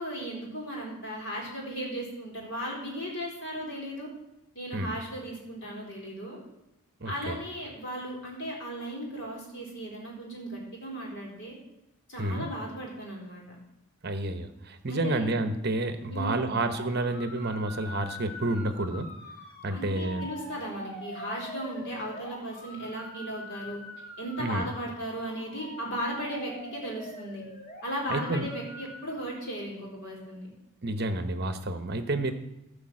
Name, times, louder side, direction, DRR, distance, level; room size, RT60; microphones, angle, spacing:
voice 1, 0.0-4.1 4.5-6.4 7.0-11.5 12.1-13.6 14.9-15.3 16.1-16.6 19.7-23.8 24.2-27.4 27.8-30.5, equal, 55° left, -2 dB, 4.0 m, -36 dB
voice 2, 7.0-7.4 12.2-12.5 14.0-19.1 19.6-20.3 24.4-24.6 28.1-28.5 30.8-32.3, right 2 dB, 45° right, 9 dB, 0.9 m, -30 dB
sound 1, 16.6-29.0, left 1 dB, 35° left, 2.0 m, -44 dB
15.0 x 5.1 x 7.5 m, 0.92 s
head